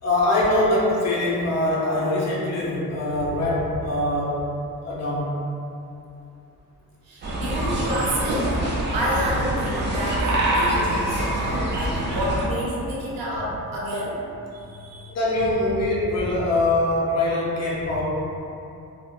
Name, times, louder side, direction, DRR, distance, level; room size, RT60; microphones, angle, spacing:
voice 1, 0.0-4.4 4.8-5.4 7.6-7.7 15.1-18.0, left 1 dB, 45° left, -7 dB, 0.7 m, -23 dB
voice 2, 7.1-8.6 8.9-14.2 14.5-15.1, right 1 dB, 75° right, -6 dB, 0.8 m, -29 dB
sound 1, 7.2-12.4, right 1 dB, 30° right, 0.4 m, -25 dB
3.5 x 2.1 x 2.3 m, 2.7 s
wide cardioid pair, 160°, 36 cm